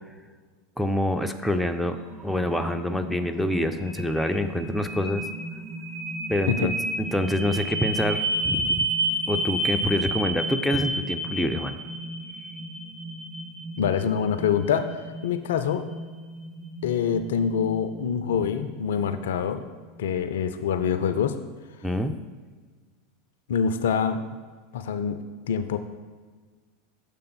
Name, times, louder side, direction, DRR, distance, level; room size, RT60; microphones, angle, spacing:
voice 1, 0.8-2.0 2.2-5.2 6.3-8.8 9.3-11.8 21.8-22.1, left 1 dB, ahead, 5 dB, 0.4 m, -26 dB
sound 1, 1.7-19.4, right 1 dB, 20° right, 0.8 m, -32 dB
voice 2, 13.8-14.9 15.2-15.8 16.8-19.6 20.0-21.3 23.5-24.2 24.7-25.2 25.5-25.8, left 7 dB, 65° left, 10 dB, 0.4 m, -25 dB
6.6 x 3.4 x 5.7 m, 1.5 s
figure-of-eight pair, 85°, 0 cm